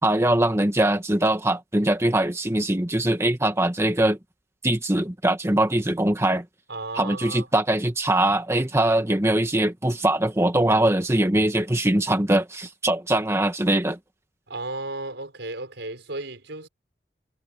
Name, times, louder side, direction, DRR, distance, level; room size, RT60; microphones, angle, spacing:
voice 1, 0.0-4.2 4.6-6.4 7.0-14.0, right 1 dB, 15° right, 1.6 m, -22 dB
voice 2, 6.7-7.5 14.5-16.7, right 2 dB, 80° right, 5.4 m, -34 dB
head